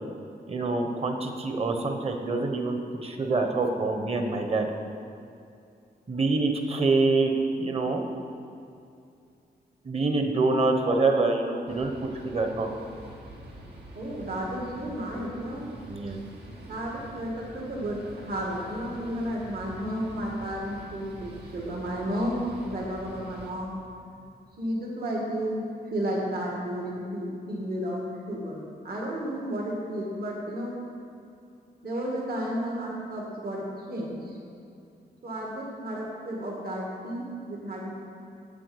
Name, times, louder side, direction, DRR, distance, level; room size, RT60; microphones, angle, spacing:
voice 1, 0.5-4.7 6.1-7.3 7.6-8.0 9.8-11.9 12.2-12.7 15.9-16.2, right 3 dB, 35° right, 4 dB, 1.1 m, -26 dB
sound 1, 11.7-23.5, right 1 dB, 80° right, 1.9 m, -45 dB
voice 2, 14.0-15.7 16.7-23.8 24.6-30.8 31.8-34.4 35.2-37.9, equal, 65° right, -3 dB, 2.0 m, -32 dB
8.9 x 8.7 x 8.0 m, 2.5 s
wide cardioid pair, 170°, 17 cm